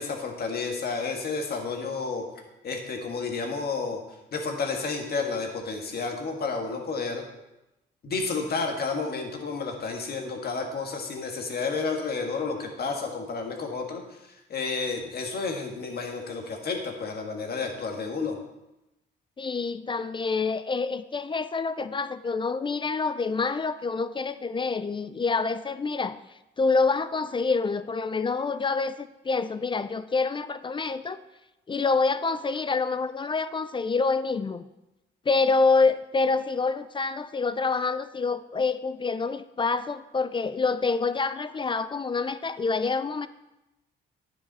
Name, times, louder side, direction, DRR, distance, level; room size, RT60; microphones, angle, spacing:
voice 1, 0.0-2.2 2.6-4.0 4.3-7.2 8.0-18.4, left 4 dB, 50° left, 2 dB, 1.6 m, -31 dB
voice 2, 19.4-26.2 26.6-31.2 31.7-34.6 35.3-43.3, left 4 dB, 25° left, 14 dB, 0.4 m, -27 dB
9.8 x 6.5 x 4.1 m, 0.95 s
cardioid pair, 90°, 20 cm